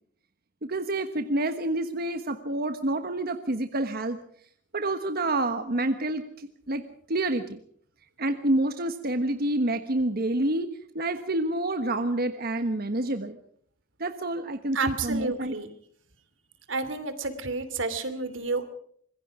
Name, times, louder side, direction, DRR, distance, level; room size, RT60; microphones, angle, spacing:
voice 1, 0.6-4.2 4.7-7.6 8.2-13.4 14.0-15.6, right 1 dB, 55° right, 8 dB, 1.3 m, -28 dB
voice 2, 14.7-15.7 16.7-18.6, right 3 dB, 85° right, 11 dB, 2.8 m, -30 dB
25.5 x 22.0 x 5.0 m, 0.64 s
head